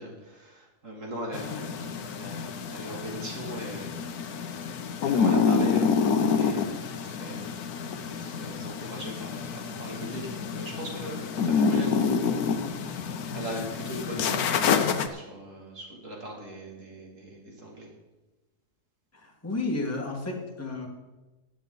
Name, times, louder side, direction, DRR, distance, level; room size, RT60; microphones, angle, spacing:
voice 1, 0.0-3.9 5.0-7.5 8.0-17.9, right 1 dB, 50° right, -1 dB, 3.1 m, -40 dB
sound 1, 1.3-15.1, left 6 dB, 70° left, 1.3 m, -28 dB
voice 2, 19.1-20.9, left 2 dB, 10° left, -1 dB, 1.8 m, -32 dB
15.5 x 10.5 x 4.0 m, 1.1 s
omnidirectional pair, 1.7 m